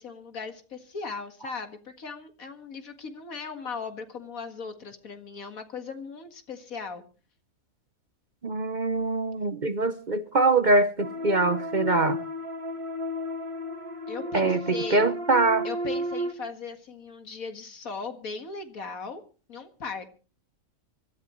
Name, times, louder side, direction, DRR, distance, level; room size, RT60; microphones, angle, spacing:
voice 1, 0.0-7.0 14.1-15.1 15.6-19.2 19.5-20.1, left 5 dB, 80° left, 7 dB, 2.3 m, -38 dB
voice 2, 8.4-12.2 14.3-15.7, right 2 dB, 40° right, 11 dB, 0.8 m, -23 dB
sound 1, 11.0-16.3, equal, 25° right, 1.3 m, -33 dB
25.5 x 13.0 x 3.1 m, 0.36 s
omnidirectional pair, 1.4 m